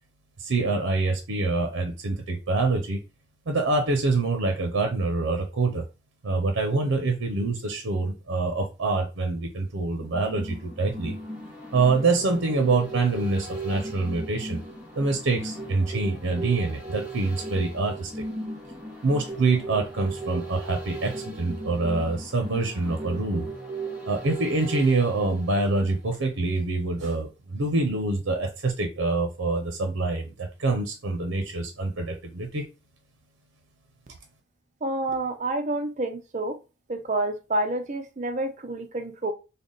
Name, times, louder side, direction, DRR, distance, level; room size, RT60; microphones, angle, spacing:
voice 1, 0.4-3.0 3.5-5.8 6.2-11.2 11.7-14.6 15.0-18.2 19.0-23.5 24.1-32.6, right 3 dB, 85° right, 0.6 m, -25 dB
sound 1, 10.0-26.3 26.6-26.7, right 2 dB, 5° right, 0.8 m, -37 dB
voice 2, 34.8-36.6 36.9-39.3, right 2 dB, 35° right, 0.5 m, -28 dB
3.4 x 2.1 x 3.8 m
head